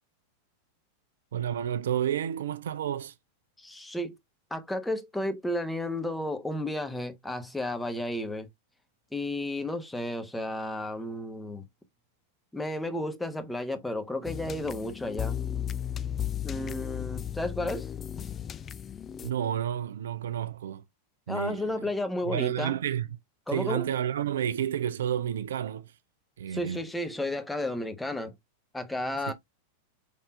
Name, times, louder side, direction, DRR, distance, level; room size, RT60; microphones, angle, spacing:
voice 1, 1.3-3.1 19.2-20.8 21.3-21.9 22.3-23.1 23.5-25.9 26.4-26.8 29.3-29.4, right 10 dB, 60° right, 0.3 m, -30 dB
voice 2, 3.6-4.1 4.5-8.5 9.1-11.6 12.5-15.4 16.4-17.9 21.3-22.7 23.5-23.8 26.5-28.3 28.7-29.3, left 1 dB, 5° left, 1.0 m, -32 dB
sound 1, 14.2-19.3, left 9 dB, 25° left, 0.3 m, -35 dB
5.4 x 3.6 x 2.3 m
figure-of-eight pair, 90°, 0 cm